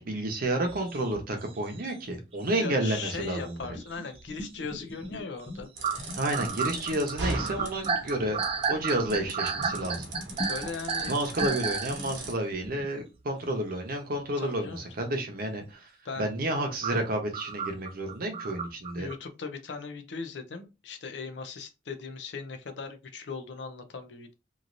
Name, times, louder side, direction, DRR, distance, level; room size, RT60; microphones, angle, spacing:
voice 1, 0.0-3.8 6.1-8.4 8.7-10.1 11.0-15.9 16.2-19.1, right 1 dB, 55° right, 0.8 m, -30 dB
sound 1, 0.7-2.3 2.7-4.2 4.6-4.8 5.1-5.2 5.8-11.9 12.7-12.8 14.7-14.8 16.8-19.1, right 5 dB, 30° right, 0.4 m, -32 dB
voice 2, 2.6-5.7 10.5-11.1 14.4-15.2 16.0-16.3 19.0-24.3, left 5 dB, 70° left, 0.5 m, -39 dB
sound 2, 3.6-5.7 6.0-12.9, left 1 dB, 25° left, 0.6 m, -41 dB
sound 3, 5.8-12.3, right 3 dB, 80° right, 0.9 m, -39 dB
3.1 x 2.5 x 2.6 m
head